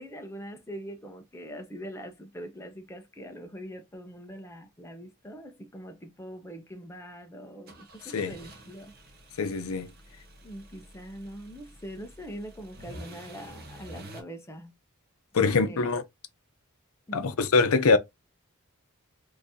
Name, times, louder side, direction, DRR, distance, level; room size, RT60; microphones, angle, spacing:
voice 1, 0.0-8.9 10.4-14.7 15.4-15.8 17.1-17.4, equal, 10° left, 0.6 m, -43 dB
sound 1, 7.7-14.2, right 1 dB, 45° right, 0.7 m, -48 dB
voice 2, 9.4-9.9 15.3-16.0 17.1-18.0, left 4 dB, 75° left, 0.6 m, -23 dB
3.8 x 2.7 x 2.7 m
head